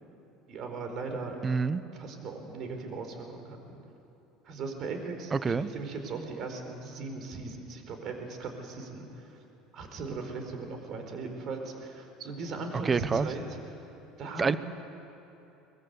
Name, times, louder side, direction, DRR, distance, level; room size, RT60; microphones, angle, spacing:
voice 1, 0.5-1.4 1.9-3.8 4.4-9.4 9.7-13.6 14.2-14.6, right 3 dB, 50° right, 5 dB, 4.6 m, -38 dB
voice 2, 1.4-1.8 5.3-5.7 12.8-13.3 14.4-14.6, right 5 dB, 25° right, 14 dB, 1.0 m, -26 dB
23.0 x 22.0 x 8.1 m, 2.9 s
hypercardioid pair, 70°, 0 cm